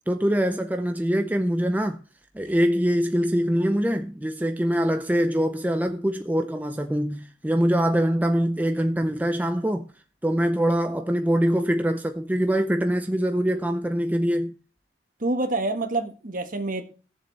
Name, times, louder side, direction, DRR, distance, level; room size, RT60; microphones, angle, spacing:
voice 1, 0.1-2.0 2.3-9.9 10.2-14.5, equal, 10° right, 0.5 m, -23 dB
voice 2, 15.2-16.8, right 2 dB, 50° right, 1.5 m, -27 dB
17.5 x 7.3 x 3.3 m
head